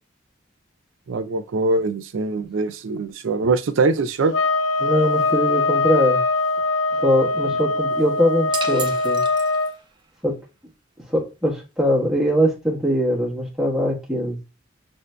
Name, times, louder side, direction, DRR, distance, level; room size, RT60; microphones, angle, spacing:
voice 1, 1.1-4.3, right 3 dB, 80° right, 0.4 m, -22 dB
sound 1, 4.3-9.7, left 3 dB, 80° left, 0.6 m, -22 dB
voice 2, 4.8-6.2 6.9-9.2 10.2-10.4 11.1-14.4, equal, ahead, 1.1 m, -21 dB
sound 2, 8.5-10.0, right 5 dB, 25° right, 0.4 m, -33 dB
6.5 x 2.6 x 2.2 m
head